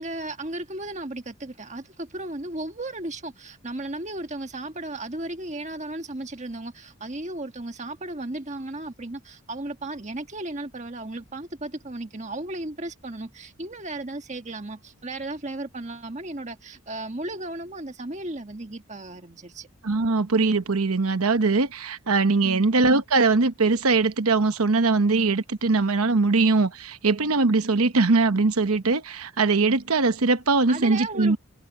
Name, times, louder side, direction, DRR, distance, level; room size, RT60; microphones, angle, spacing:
voice 1, 0.0-19.7 22.4-22.7 30.7-31.4, right 2 dB, 30° right, 1.5 m, -35 dB
voice 2, 19.8-31.4, right 3 dB, 85° right, 1.0 m, -21 dB
head